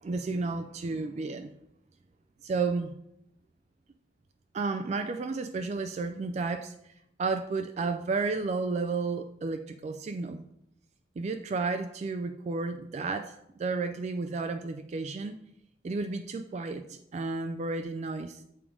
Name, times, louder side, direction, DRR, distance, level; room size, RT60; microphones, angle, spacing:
voice 1, 0.0-1.5 2.4-2.9 4.5-6.7 7.2-10.4 11.2-13.3 13.6-15.4 15.8-16.8 17.1-18.4, right 3 dB, 40° right, 8 dB, 0.3 m, -32 dB
6.9 x 3.7 x 4.9 m, 0.78 s
head